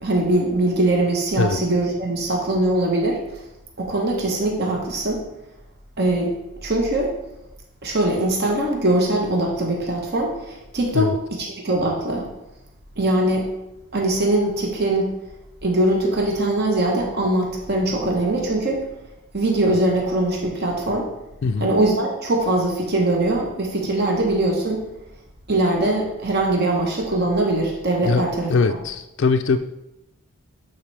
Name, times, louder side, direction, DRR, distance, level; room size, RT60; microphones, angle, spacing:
voice 1, 0.0-3.2 3.8-5.2 6.0-6.3 6.6-7.1 7.8-11.1 11.4-12.3 13.0-13.5 13.9-15.1 15.6-18.8 19.3-21.1 21.6-24.8 25.5-28.5, right 1 dB, 50° right, -1 dB, 1.0 m, -21 dB
voice 2, 28.0-29.6, left 4 dB, 55° left, 7 dB, 0.3 m, -21 dB
8.9 x 4.3 x 3.3 m, 0.92 s
head